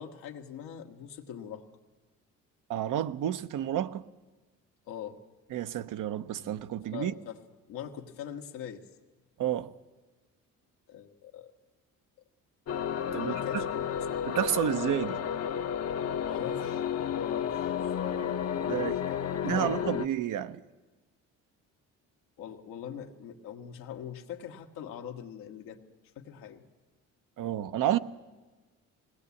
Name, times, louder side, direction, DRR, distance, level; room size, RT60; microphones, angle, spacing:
voice 1, 0.0-1.6 4.9-5.2 6.9-7.4 7.7-8.9 10.9-11.5 13.0-13.8 16.2-16.8 17.1-18.2 18.6-19.8 22.4-25.8 26.1-26.6, left 9 dB, 90° left, 1.6 m, -42 dB
voice 2, 2.7-4.1 5.5-7.1 9.4-9.7 13.1-13.7 14.3-15.2 18.7-19.0 19.4-20.6 27.4-28.0, right 11 dB, 70° right, 0.9 m, -30 dB
sound 1, 12.7-20.1, left 8 dB, 50° left, 0.9 m, -32 dB
20.0 x 18.0 x 8.4 m
cardioid pair, 85°, 33 cm